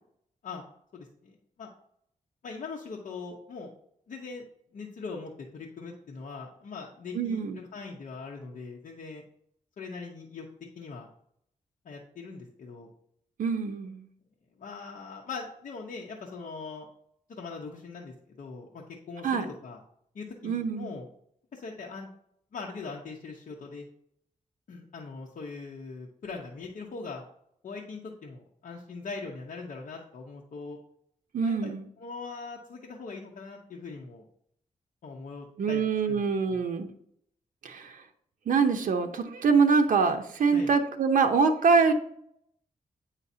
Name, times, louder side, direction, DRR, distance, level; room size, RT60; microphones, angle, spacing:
voice 1, 0.9-1.7 2.4-3.7 4.1-4.4 4.7-9.2 9.8-10.5 10.8-11.1 11.8-12.9 14.6-16.9 17.3-19.8 20.1-21.0 21.5-22.1 22.5-23.9 24.7-27.2 27.6-30.8 31.4-31.7 32.0-34.3 35.0-36.6 40.5-40.7, left 4 dB, 70° left, -2 dB, 0.9 m, -41 dB
voice 2, 7.1-7.6 13.4-14.1 19.2-19.5 20.4-21.0 31.3-31.8 35.6-36.9 37.6-38.0 38.5-41.9, right 5 dB, 75° right, 5 dB, 0.8 m, -24 dB
8.2 x 5.6 x 2.7 m, 0.69 s
wide cardioid pair, 145°, 14 cm